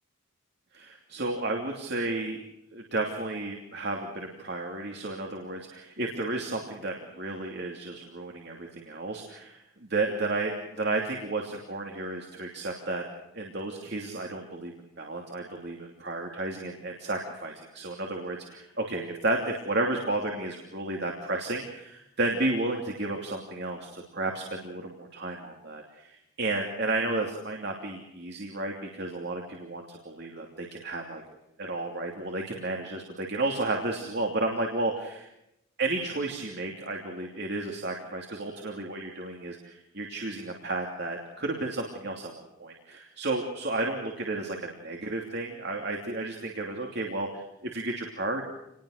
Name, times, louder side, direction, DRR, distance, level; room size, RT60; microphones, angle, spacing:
voice 1, 0.7-2.4 2.7-13.0 13.3-31.2 31.6-35.3 35.8-48.4, right 2 dB, 50° right, 1 dB, 2.9 m, -32 dB
28.0 x 20.5 x 6.6 m, 0.84 s
head